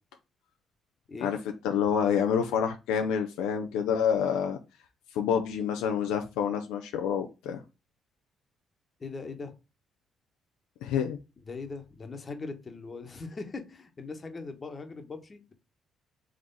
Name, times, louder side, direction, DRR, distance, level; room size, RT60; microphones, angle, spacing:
voice 1, 1.6-4.6 5.1-7.6 10.8-11.2, left 7 dB, 85° left, 0.4 m, -27 dB
voice 2, 9.0-9.5 11.5-15.5, left 3 dB, 35° left, 1.1 m, -40 dB
3.8 x 3.2 x 3.9 m
supercardioid pair, 60°, 0 cm